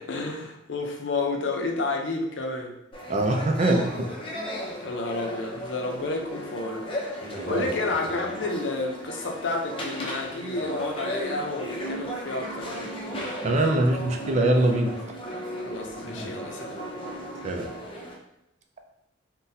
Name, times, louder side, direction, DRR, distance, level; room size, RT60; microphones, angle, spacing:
voice 1, 0.0-2.7 4.8-12.8 15.6-16.8, left 2 dB, 80° left, 2 dB, 0.6 m, -31 dB
sound 1, 2.9-18.2, equal, 30° left, 0.6 m, -35 dB
voice 2, 3.1-4.1 7.5-7.7 13.4-15.0 17.4-17.7, right 1 dB, 40° right, 3 dB, 0.4 m, -23 dB
3.9 x 2.2 x 2.7 m, 0.86 s
head